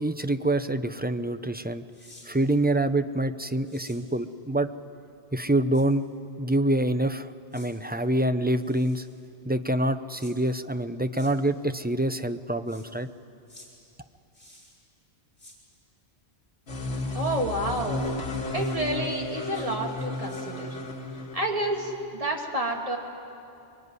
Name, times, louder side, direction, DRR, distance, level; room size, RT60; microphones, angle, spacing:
voice 1, 0.0-1.8 2.2-4.7 5.3-6.1 6.4-9.1 9.5-13.1, right 1 dB, 15° right, 10 dB, 0.4 m, -26 dB
sound 1, 1.9-2.3 3.6-4.0 5.7-5.8 7.5-7.7 8.6-9.2 10.2-10.3 11.1-11.3 12.7-12.9 13.5-13.7 14.3-14.8 15.4-15.6 18.0-18.1 18.5-18.7 19.5-19.7 20.0-20.4, left 1 dB, 40° left, 5.6 m, -52 dB
sound 2, 16.7-22.0, left 1 dB, 65° left, 1.9 m, -33 dB
voice 2, 17.1-18.0 18.5-20.8 21.3-23.0, right 1 dB, 30° right, 0 dB, 2.4 m, -29 dB
23.0 x 23.0 x 9.7 m, 2.7 s
omnidirectional pair, 1.1 m